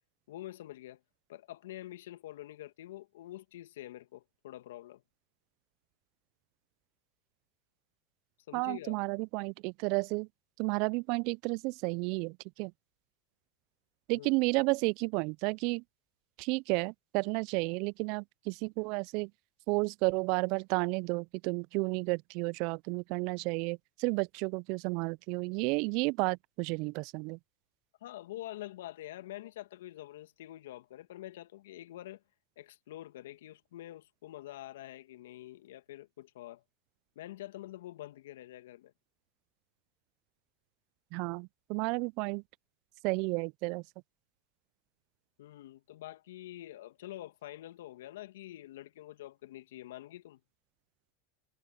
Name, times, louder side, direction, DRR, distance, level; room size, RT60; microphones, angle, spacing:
voice 1, 0.3-1.0 1.3-5.0 8.5-8.9 14.1-14.4 28.0-32.2 32.6-36.6 37.2-38.9 45.4-50.4, left 14 dB, 75° left, 2.2 m, -46 dB
voice 2, 8.5-10.3 10.6-12.7 14.1-15.8 16.4-19.3 19.7-27.4 41.1-42.4 43.0-43.8, right 29 dB, 60° right, 0.3 m, -32 dB
hypercardioid pair, 100°, 0 cm